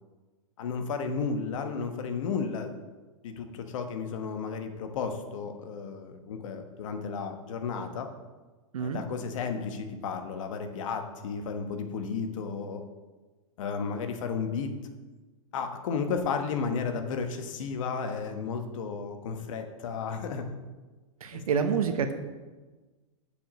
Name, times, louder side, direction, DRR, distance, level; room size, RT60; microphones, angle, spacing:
voice 1, 0.6-2.7 3.2-8.1 8.8-12.8 13.6-14.7 15.5-20.5 21.3-21.7, left 5 dB, 65° left, 6 dB, 1.3 m, -33 dB
voice 2, 21.2-22.1, right 6 dB, 85° right, 6 dB, 0.9 m, -27 dB
6.8 x 5.1 x 6.8 m, 1.2 s
hypercardioid pair, 125°, 18 cm